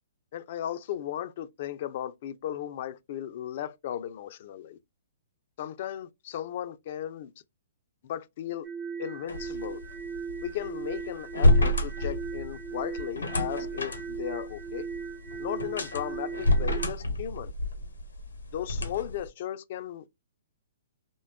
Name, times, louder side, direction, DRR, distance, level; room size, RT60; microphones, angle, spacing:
voice 1, 0.3-4.8 5.6-7.3 8.1-8.7 9.0-9.8 10.4-14.9 15.4-17.5 18.5-20.1, left 11 dB, 50° left, 0.3 m, -36 dB
sound 1, 8.6-16.9, right 6 dB, 25° right, 0.5 m, -38 dB
sound 2, 9.3-19.3, left 1 dB, 90° left, 0.7 m, -29 dB
2.5 x 2.2 x 2.2 m
hypercardioid pair, 130°, 0 cm